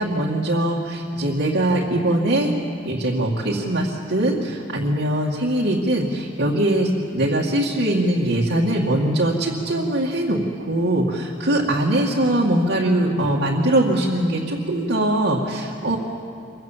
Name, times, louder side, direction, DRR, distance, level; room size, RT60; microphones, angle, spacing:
voice 1, 0.0-2.5 2.9-10.4 10.7-16.0, right 1 dB, 65° right, -5 dB, 2.2 m, -21 dB
25.5 x 22.0 x 7.5 m, 2.5 s
head